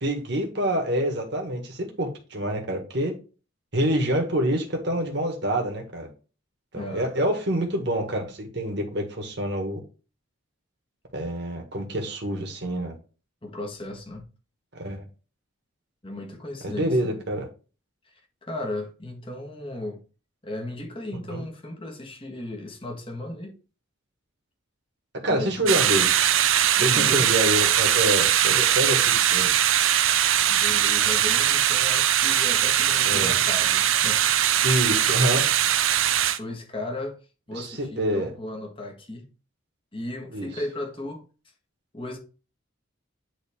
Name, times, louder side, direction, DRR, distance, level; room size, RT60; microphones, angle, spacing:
voice 1, 0.0-3.1 3.7-6.1 6.7-9.8 11.1-13.0 14.7-15.1 16.6-17.5 21.3-21.4 25.2-26.3 26.8-29.5 33.0-33.4 34.6-35.5 37.5-38.3 40.3-40.5, right 1 dB, 55° right, 1.7 m, -27 dB
voice 2, 6.7-7.2 13.4-14.3 16.0-17.2 18.0-18.1 18.4-20.0 20.4-23.6 25.3-25.7 26.8-27.4 30.5-34.3 36.4-37.2 37.5-39.3 39.9-41.3 41.9-42.2, left 1 dB, 25° left, 1.6 m, -35 dB
sound 1, 25.7-36.4, right 11 dB, 75° right, 0.6 m, -21 dB
9.3 x 3.8 x 3.6 m
head